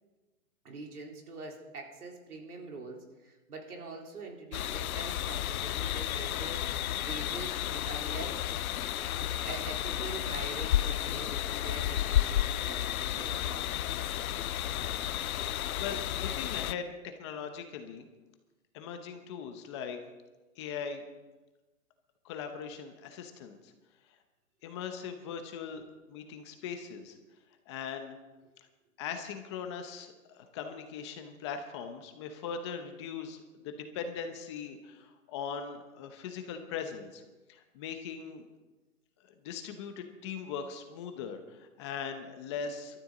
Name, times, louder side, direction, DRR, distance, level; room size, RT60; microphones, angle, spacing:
voice 1, 0.6-8.4 9.5-13.7, right 3 dB, 90° right, 0 dB, 3.8 m, -44 dB
sound 1, 4.5-16.7, left 12 dB, 75° left, 0.6 m, -32 dB
voice 2, 15.8-18.1 18.7-20.0 20.6-21.0 22.2-23.7 24.6-25.8 26.1-27.2 27.7-28.2 28.6-28.7 29.0-37.2 37.5-38.4 39.2-43.0, left 6 dB, 20° left, 6 dB, 0.8 m, -40 dB
21.0 x 13.0 x 3.9 m, 1.2 s
hypercardioid pair, 160°, 43 cm